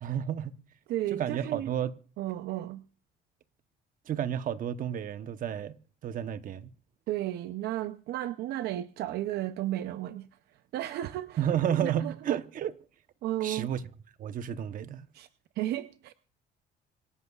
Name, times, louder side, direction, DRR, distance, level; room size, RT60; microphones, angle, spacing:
voice 1, 0.0-0.5 1.1-1.9 4.1-5.7 6.0-6.7 11.4-12.7 13.4-13.8 14.2-15.1, right 9 dB, 55° right, 1.0 m, -31 dB
voice 2, 0.9-1.7 2.2-2.8 7.1-10.3 10.7-11.5 11.8-12.4 13.2-13.7 15.1-15.3 15.6-16.1, right 14 dB, 75° right, 0.6 m, -33 dB
26.0 x 11.0 x 2.4 m
cardioid pair, 110°, 17 cm